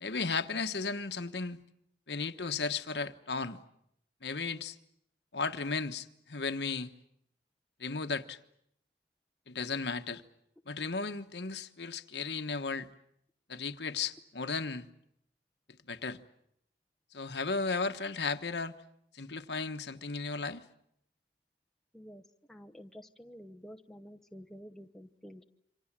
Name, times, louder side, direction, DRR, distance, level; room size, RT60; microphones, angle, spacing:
voice 1, 0.0-1.6 2.1-3.6 4.2-4.8 5.3-6.9 7.8-8.4 9.5-10.2 10.7-12.9 13.5-14.9 15.9-16.2 17.1-18.7 19.1-20.6, left 4 dB, 75° left, 1.2 m, -35 dB
voice 2, 22.5-25.4, equal, ahead, 1.0 m, -50 dB
27.5 x 25.5 x 7.4 m
head